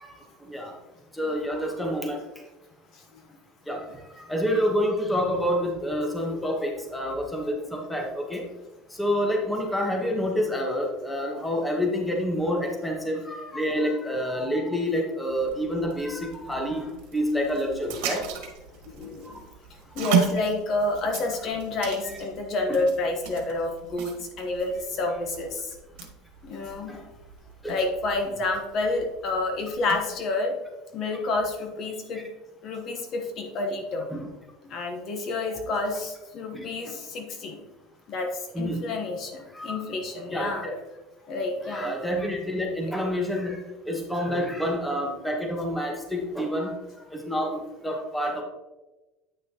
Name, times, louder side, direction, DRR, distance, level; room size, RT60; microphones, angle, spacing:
voice 1, 1.1-2.2 3.7-3.8 4.1-8.4 9.0-18.2 22.0-22.2 26.9-27.0 27.6-27.7 34.1-34.3 36.5-36.6 38.5-38.8 39.5-39.8 40.3-40.7 41.7-46.8 47.1-48.4, equal, 5° left, 0 dB, 1.2 m, -28 dB
sound 1, 15.3-30.1, right 8 dB, 75° right, 1.4 m, -35 dB
voice 2, 19.0-19.4 20.0-25.6 26.4-26.9 27.7-30.5 30.9-32.2 32.6-34.1 34.7-37.6 38.1-38.3 38.6-40.7 41.3-41.9, left 2 dB, 40° left, 3 dB, 1.1 m, -29 dB
9.0 x 6.1 x 2.9 m, 1.1 s
cardioid pair, 145°, 0 cm